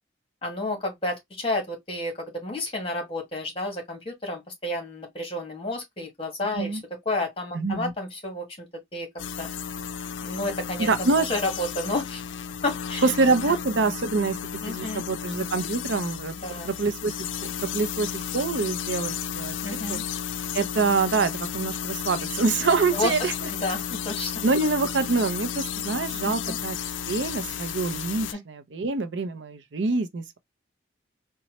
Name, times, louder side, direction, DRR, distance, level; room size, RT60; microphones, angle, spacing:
voice 1, 0.4-6.8 7.0-8.7 8.9-9.1 9.4-9.5 10.2-10.9 11.2-12.2 12.6-13.1 13.4-13.5 14.6-15.0 16.4-16.7 19.6-20.1 22.9-23.1 23.5-24.3 26.2-26.6 28.3-28.4, left 2 dB, 30° left, 1.4 m, -31 dB
voice 2, 7.5-7.9 10.8-11.3 13.0-14.4 14.7-16.3 16.6-17.2 17.4-20.0 20.5-23.3 24.4-26.8 27.1-30.4, right 4 dB, 75° right, 0.6 m, -25 dB
sound 1, 9.2-28.3, left 8 dB, 85° left, 0.4 m, -33 dB
4.0 x 2.2 x 2.9 m
head